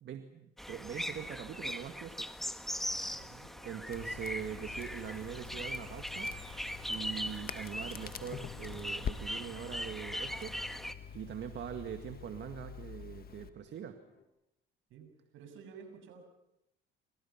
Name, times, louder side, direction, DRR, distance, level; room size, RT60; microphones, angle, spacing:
voice 1, 0.0-2.3 2.6-3.0 3.6-6.4 6.9-14.0, right 9 dB, 60° right, 6 dB, 2.0 m, -43 dB
sound 1, 0.6-10.9, equal, ahead, 1.7 m, -40 dB
voice 2, 3.0-3.5 14.9-16.2, right 6 dB, 75° right, 5 dB, 7.3 m, -52 dB
sound 2, 3.1-14.2, left 8 dB, 80° left, 3.7 m, -66 dB
Crackle, 3.9-13.5, left 7 dB, 50° left, 1.7 m, -45 dB
28.5 x 27.0 x 5.9 m, 0.87 s
supercardioid pair, 80°, 21 cm